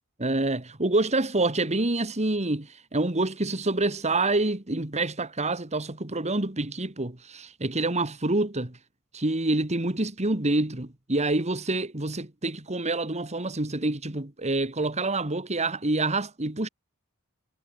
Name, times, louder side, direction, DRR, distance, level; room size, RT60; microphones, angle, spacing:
voice 1, 0.2-8.8 9.1-16.7, right 2 dB, 30° right, 2.1 m, -27 dB
head